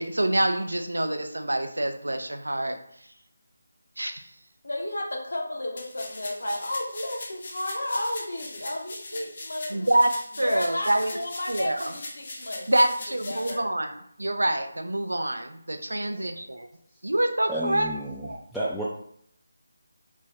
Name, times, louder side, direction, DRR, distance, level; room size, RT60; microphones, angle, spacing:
voice 1, 0.0-2.8 4.0-4.3 9.7-10.1 10.4-11.1 11.5-11.9 12.7-16.7 17.0-17.9 18.2-18.4, right 1 dB, 85° right, 6 dB, 0.4 m, -26 dB
voice 2, 4.6-9.9 10.4-12.9 13.3-13.7 15.9-16.5, left 1 dB, 75° left, 0 dB, 1.0 m, -33 dB
sound 1, 5.8-13.5, left 2 dB, 50° left, 0.7 m, -40 dB
voice 3, 17.5-18.8, equal, ahead, -9 dB, 0.3 m, -31 dB
3.4 x 2.1 x 3.3 m, 0.67 s
figure-of-eight pair, 160°, 0 cm